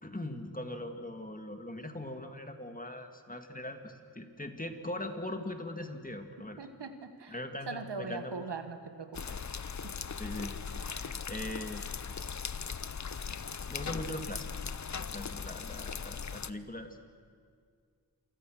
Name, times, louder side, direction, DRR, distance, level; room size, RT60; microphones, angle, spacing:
voice 1, 0.0-6.6 7.3-8.4 10.2-11.9 13.7-14.5 15.0-17.0, left 1 dB, 20° left, 6 dB, 2.2 m, -41 dB
voice 2, 6.6-7.4 7.7-9.4 9.8-10.0, right 4 dB, 85° right, 8 dB, 1.8 m, -41 dB
sound 1, 9.1-16.5, left 6 dB, 45° left, 0.7 m, -39 dB
27.5 x 24.5 x 6.5 m, 2.1 s
wide cardioid pair, 65°, 40 cm